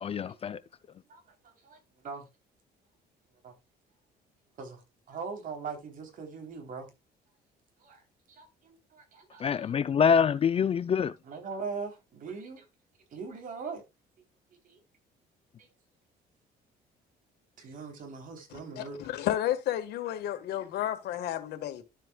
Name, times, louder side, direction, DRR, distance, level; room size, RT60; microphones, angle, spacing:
voice 1, 0.0-0.6 9.4-11.1, left 7 dB, 35° left, 0.5 m, -25 dB
voice 2, 1.1-1.8 2.0-2.2 3.4-3.5 4.6-4.8 5.1-6.9 7.8-8.0 8.4-9.7 11.2-12.6 13.1-13.8 14.6-14.8 15.6-15.7 17.6-19.0, right 5 dB, 55° right, 3.6 m, -41 dB
voice 3, 18.5-21.8, left 12 dB, 75° left, 1.7 m, -32 dB
12.0 x 7.6 x 2.4 m
cardioid pair, 110°, 17 cm